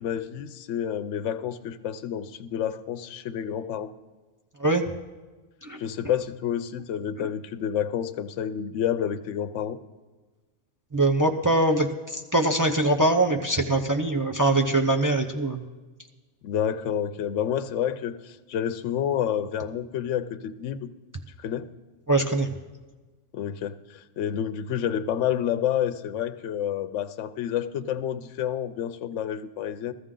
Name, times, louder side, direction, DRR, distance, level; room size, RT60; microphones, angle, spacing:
voice 1, 0.0-3.9 5.8-9.8 16.4-20.9 21.4-21.7 23.3-29.9, left 9 dB, 70° left, 10 dB, 0.9 m, -29 dB
voice 2, 10.9-15.6 22.1-22.5, right 2 dB, 25° right, 2 dB, 0.4 m, -23 dB
15.0 x 14.0 x 3.8 m, 1.3 s
omnidirectional pair, 1.4 m